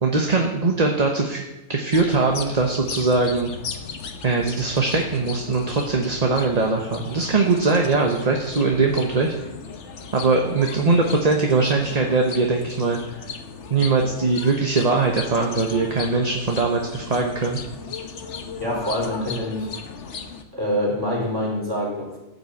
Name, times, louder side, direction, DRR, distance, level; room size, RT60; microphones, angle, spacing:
voice 1, 0.0-1.4 1.7-3.5 4.2-9.3 10.1-13.0 13.7-17.6, right 3 dB, 30° right, 2 dB, 1.1 m, -21 dB
sound 1, 1.9-20.4, left 5 dB, 55° left, 1.3 m, -36 dB
voice 2, 18.6-19.7 20.5-22.2, left 1 dB, 15° right, -4 dB, 4.5 m, -25 dB
15.0 x 6.0 x 8.0 m, 0.99 s
omnidirectional pair, 1.5 m